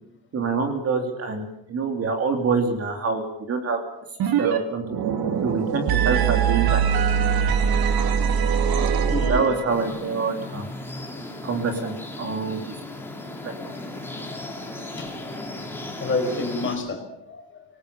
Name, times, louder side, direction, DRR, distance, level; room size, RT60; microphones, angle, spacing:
voice 1, 0.3-3.8 4.4-4.8 5.4-6.8 9.1-10.7 11.4-12.6 13.4-13.5, right 4 dB, 35° right, 4 dB, 3.1 m, -26 dB
sound 1, 4.2-4.6 4.8-9.8, right 7 dB, 55° right, 2.4 m, -22 dB
voice 2, 8.9-9.5 14.1-14.6 15.0-15.1 16.0-17.6, left 3 dB, 25° left, 5 dB, 5.1 m, -30 dB
sound 2, 9.7-16.8, left 2 dB, 5° left, 3.3 m, -36 dB
25.5 x 19.5 x 6.9 m, 0.75 s
cardioid pair, 170°, 44 cm